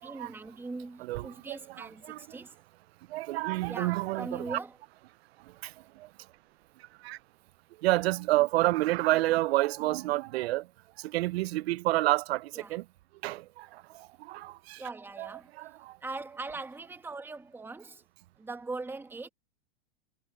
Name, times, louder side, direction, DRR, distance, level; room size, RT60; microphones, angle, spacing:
voice 1, 0.0-2.5 3.7-4.8 12.5-12.8 14.8-15.7 16.0-18.0 18.4-19.3, right 3 dB, 5° right, 1.7 m, -41 dB
voice 2, 1.1-2.2 3.1-4.6 7.0-7.2 7.8-10.6 11.1-12.8 13.2-13.7 14.3-14.8 15.2-15.3 15.6-15.7, right 18 dB, 70° right, 0.5 m, -28 dB
supercardioid pair, 135°, 33 cm